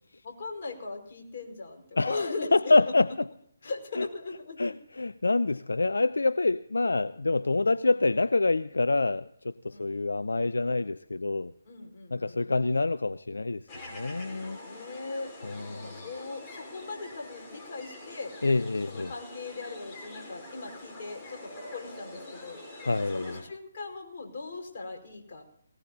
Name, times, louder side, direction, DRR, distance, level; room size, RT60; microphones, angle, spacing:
voice 1, 0.2-2.5 2.8-2.9 3.6-4.8 9.7-9.9 11.7-12.7 14.6-18.3 18.9-22.6 23.1-25.4, left 3 dB, 45° left, 4.9 m, -39 dB
voice 2, 2.0-3.1 4.0-4.1 4.6-11.5 12.1-13.6 13.9-14.6 15.4-15.9 18.4-19.1 22.9-23.4, left 3 dB, 80° left, 0.5 m, -26 dB
sound 1, 13.7-23.4, left 2 dB, 20° left, 5.1 m, -45 dB
19.0 x 18.5 x 2.8 m
figure-of-eight pair, 145°, 0 cm